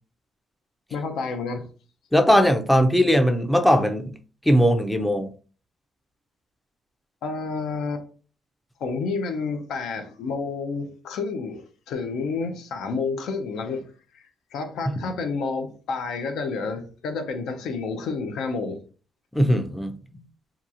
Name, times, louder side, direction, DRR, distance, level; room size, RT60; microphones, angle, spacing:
voice 1, 0.9-1.7 7.2-8.0 8.8-13.8 14.1-18.8, left 4 dB, 80° left, 0.5 m, -30 dB
voice 2, 2.1-4.1 4.5-5.3 15.0-15.1 19.3-19.9, equal, 5° left, 0.4 m, -19 dB
2.8 x 2.3 x 2.4 m
cardioid pair, 90°, 0 cm